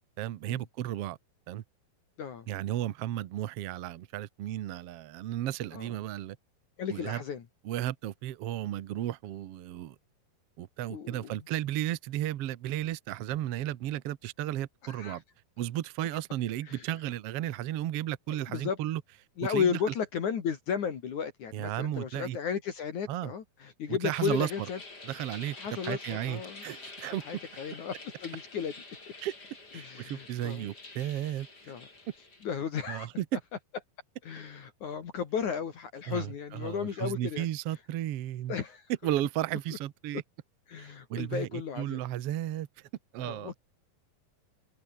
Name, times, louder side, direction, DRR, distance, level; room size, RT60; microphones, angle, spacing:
voice 1, 0.2-1.2 1.5-1.6 2.5-6.4 6.9-7.2 7.6-9.9 10.6-15.2 15.6-19.0 19.5-19.9 21.5-22.4 23.1-23.3 23.9-24.7 25.0-25.6 25.8-27.2 29.2-29.3 29.7-31.7 32.9-33.2 36.1-38.6 39.0-40.2 40.8-43.5, right 13 dB, 75° right, 1.4 m, -34 dB
voice 2, 6.8-7.4 10.9-11.4 14.8-15.2 16.7-16.9 18.5-18.8 19.4-24.8 25.6-26.0 26.3-26.6 27.3-27.9 28.2-28.7 29.8-30.7 31.7-31.9 32.4-33.1 34.3-37.5 38.5-38.8 40.7-42.0 43.2-43.6, left 7 dB, 60° left, 3.6 m, -34 dB
sound 1, 24.1-32.5, left 3 dB, 25° left, 5.5 m, -48 dB
omnidirectional pair, 4.1 m